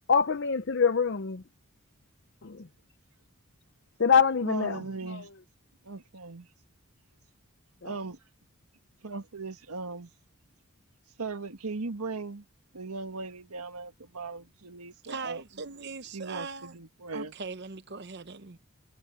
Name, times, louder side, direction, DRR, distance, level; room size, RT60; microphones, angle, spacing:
voice 1, 0.1-1.4 2.4-2.7 4.0-5.2 7.8-8.0, left 6 dB, 55° left, 0.6 m, -25 dB
voice 2, 4.5-5.3 5.8-6.5 7.8-8.2 9.0-10.1 11.2-12.4 12.7-15.4 16.1-17.3, right 4 dB, 90° right, 1.5 m, -38 dB
voice 3, 15.0-16.7 17.1-18.6, right 4 dB, 50° right, 0.9 m, -40 dB
head